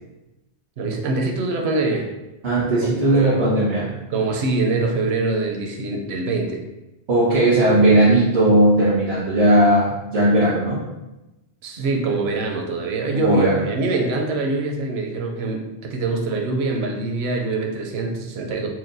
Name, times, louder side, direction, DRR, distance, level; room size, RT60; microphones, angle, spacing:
voice 1, 0.8-2.1 2.8-3.4 4.1-6.6 11.6-18.7, right 3 dB, 70° right, 2 dB, 0.8 m, -24 dB
voice 2, 2.4-3.9 7.1-10.8 13.1-13.6, right 1 dB, 90° right, -11 dB, 1.5 m, -17 dB
5.9 x 2.2 x 2.6 m, 0.99 s
omnidirectional pair, 1.2 m